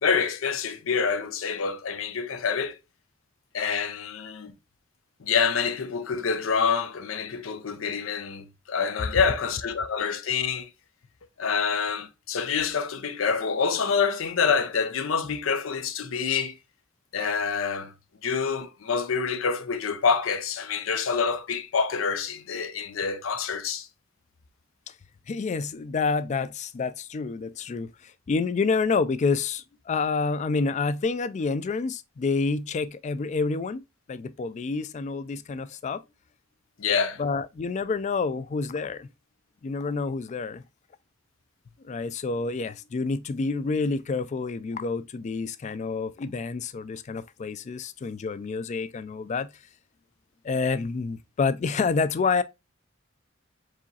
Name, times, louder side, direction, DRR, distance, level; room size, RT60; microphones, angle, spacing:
voice 1, 0.0-2.8 3.5-4.5 5.2-10.7 11.4-16.6 17.1-17.9 18.2-23.9 36.8-37.2, left 6 dB, 90° left, 0.6 m, -27 dB
voice 2, 25.3-33.8 34.1-36.0 37.2-39.1 39.6-40.6 41.8-49.5 50.4-52.4, left 4 dB, 35° left, 0.3 m, -28 dB
4.7 x 3.0 x 2.7 m
head